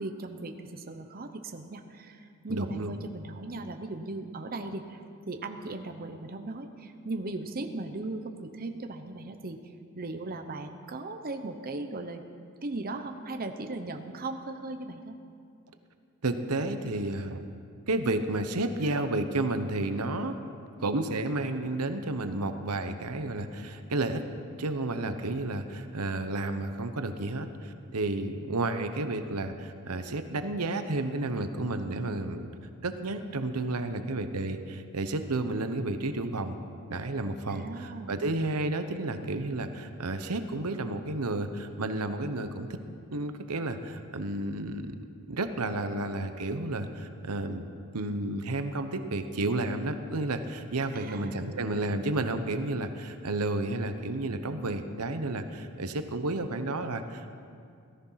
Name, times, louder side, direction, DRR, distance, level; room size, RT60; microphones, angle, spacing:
voice 1, 0.0-5.0 5.3-9.6 10.0-12.2 12.6-15.1 37.5-38.2 50.9-51.7, right 2 dB, 40° right, 6 dB, 0.8 m, -38 dB
voice 2, 2.5-2.9 16.2-17.4 17.9-20.3 20.8-24.3 24.6-32.5 32.8-36.6 36.9-42.7 43.1-45.0 45.3-47.7 47.9-57.4, right 2 dB, 80° right, 8 dB, 1.0 m, -31 dB
18.0 x 13.5 x 5.8 m, 2.3 s
head